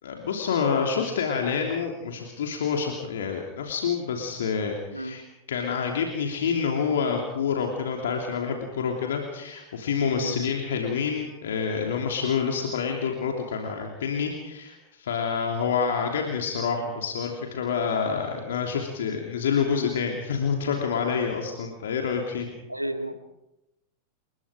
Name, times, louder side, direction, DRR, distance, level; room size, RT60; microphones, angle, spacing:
voice 1, 0.0-5.2 5.5-22.5, left 6 dB, 60° left, 2 dB, 3.1 m, -27 dB
voice 2, 22.7-23.2, right 1 dB, 90° right, 7 dB, 2.1 m, -32 dB
29.0 x 21.0 x 5.1 m, 0.94 s
figure-of-eight pair, 90°, 0 cm